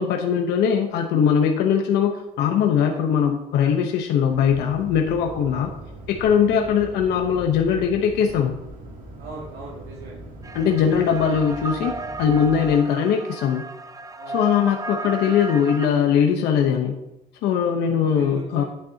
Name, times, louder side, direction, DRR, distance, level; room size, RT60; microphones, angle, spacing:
voice 1, 0.0-5.7 6.1-8.6 10.5-13.6 14.3-16.9 17.4-18.6, left 7 dB, 85° left, 3 dB, 0.9 m, -21 dB
sound 1, 4.3-12.7, right 1 dB, 50° right, 2.6 m, -41 dB
voice 2, 9.2-10.2 14.2-14.4 17.8-18.6, right 3 dB, 85° right, -5 dB, 2.2 m, -39 dB
sound 2, 10.4-15.9, right 2 dB, 20° right, 0.5 m, -34 dB
10.5 x 8.9 x 2.9 m, 0.86 s
cardioid pair, 110°, 17 cm